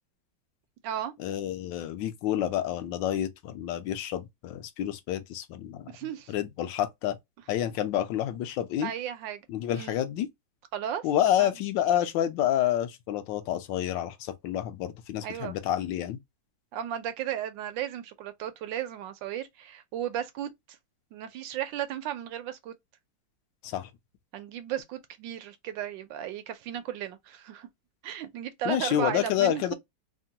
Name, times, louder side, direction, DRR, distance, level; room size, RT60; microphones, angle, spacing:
voice 1, 1.2-5.9 6.3-7.2 7.5-8.9 9.5-10.3 11.0-16.2 23.6-23.9 28.7-29.7, left 11 dB, 80° left, 1.2 m, -28 dB
voice 2, 5.9-6.3 8.8-9.5 9.7-10.0 10.7-11.0 11.4-11.5 15.2-15.5 16.7-20.8 21.1-22.7 24.3-27.7 28.0-29.7, right 10 dB, 80° right, 1.3 m, -35 dB
3.4 x 2.2 x 2.7 m
omnidirectional pair, 2.0 m